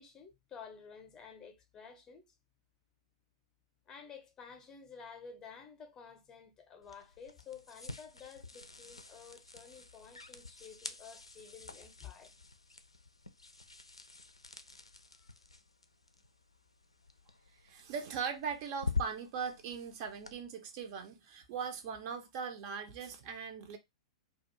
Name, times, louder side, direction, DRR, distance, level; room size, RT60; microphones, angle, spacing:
voice 1, 0.0-2.3 3.9-12.3 15.2-15.3, left 6 dB, 20° left, 0.6 m, -52 dB
sound 1, 6.8-20.4, left 3 dB, 80° left, 0.4 m, -46 dB
voice 2, 17.6-23.8, right 6 dB, 40° right, 0.5 m, -40 dB
2.4 x 2.3 x 2.8 m
figure-of-eight pair, 100°, 3 cm